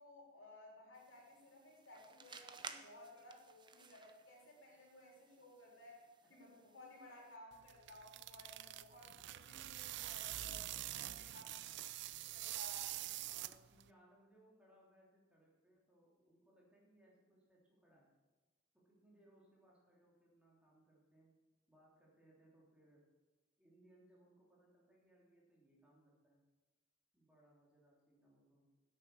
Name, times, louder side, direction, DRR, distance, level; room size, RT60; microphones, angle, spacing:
voice 1, 0.0-6.0 6.3-11.7 12.1-12.9, left 1 dB, 85° left, -2 dB, 3.9 m, -58 dB
sound 1, 0.9-7.4, right 5 dB, 25° right, 0.7 m, -57 dB
sound 2, 7.5-13.9, right 15 dB, 60° right, 0.4 m, -46 dB
voice 2, 11.2-12.3 13.2-18.1 18.7-21.3 21.7-23.1 23.6-26.4 27.1-28.7, right 1 dB, 5° right, -4 dB, 3.1 m, -69 dB
10.0 x 8.6 x 6.5 m, 1.2 s
head